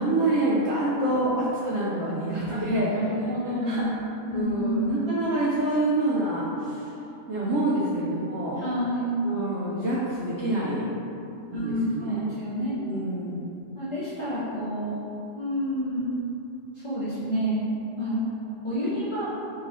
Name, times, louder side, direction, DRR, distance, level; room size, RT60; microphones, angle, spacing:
voice 1, 0.0-2.9 3.6-3.9 4.3-6.8 7.3-8.6 9.2-11.0 11.5-12.3 12.8-13.6, right 1 dB, 70° right, -7 dB, 0.8 m, -27 dB
voice 2, 0.9-1.3 2.5-2.6 2.9-4.0 4.3-4.8 8.6-9.1 11.5-12.7 13.7-15.0 15.4-16.1 16.8-17.7 18.0-18.3 18.6-19.3, equal, 30° left, -13 dB, 0.7 m, -29 dB
3.6 x 2.9 x 3.0 m, 2.8 s
omnidirectional pair, 1.3 m